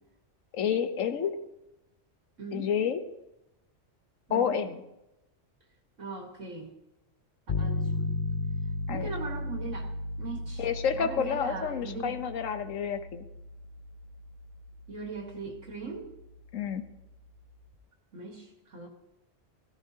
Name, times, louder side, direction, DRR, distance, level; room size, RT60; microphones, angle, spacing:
voice 1, 0.5-1.3 2.5-3.0 4.3-4.8 8.9-9.1 10.6-13.2 16.5-16.8, left 7 dB, 85° left, 10 dB, 1.2 m, -29 dB
voice 2, 2.4-2.7 4.3-4.6 6.0-6.7 7.6-8.1 8.9-9.9 10.2-10.6 10.9-12.1 14.9-16.1 18.1-18.9, right 3 dB, 70° right, 1 dB, 2.0 m, -39 dB
sound 1, 7.5-17.4, left 2 dB, 40° left, 0.6 m, -36 dB
15.0 x 15.0 x 2.8 m, 0.92 s
omnidirectional pair, 1.3 m